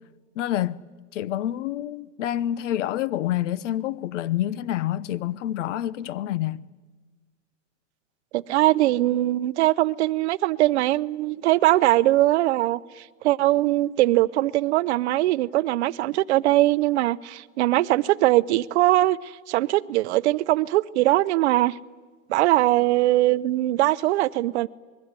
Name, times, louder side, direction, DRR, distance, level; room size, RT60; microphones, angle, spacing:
voice 1, 0.4-0.8 1.1-6.6, left 12 dB, 65° left, 1.0 m, -27 dB
voice 2, 8.3-12.8 13.2-21.8 22.3-24.7, right 16 dB, 55° right, 0.7 m, -21 dB
27.0 x 21.5 x 9.6 m
supercardioid pair, 170°, 40 cm